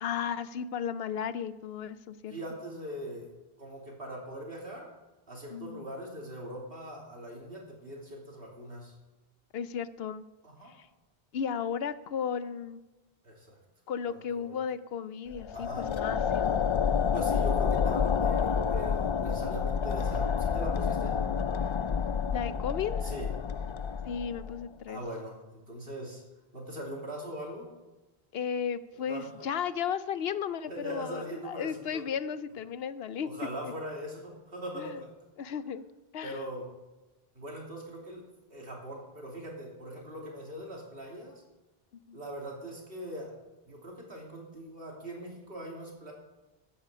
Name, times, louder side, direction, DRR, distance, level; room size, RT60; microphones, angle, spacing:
voice 1, 0.0-2.3 5.5-5.9 9.5-10.2 10.8-10.9 11.3-12.8 13.9-16.7 22.3-23.1 24.0-25.0 28.3-33.3 33.6-33.7 34.7-35.0 35.4-35.9 36.1-36.4 42.1-42.2, left 7 dB, 75° left, 14 dB, 0.9 m, -34 dB
voice 2, 2.3-4.9 5.3-8.9 10.4-10.7 13.2-13.6 14.1-14.6 15.5-15.9 17.1-21.2 23.0-23.3 24.9-26.2 26.5-27.7 29.0-29.5 30.7-32.0 33.2-35.1 36.2-36.7 37.3-41.4 42.1-43.3 43.7-46.1, right 1 dB, 65° right, -2 dB, 3.2 m, -41 dB
sound 1, 15.3-24.6, left 6 dB, 55° left, 0.3 m, -29 dB
14.0 x 9.1 x 5.0 m, 1.1 s
omnidirectional pair, 1.0 m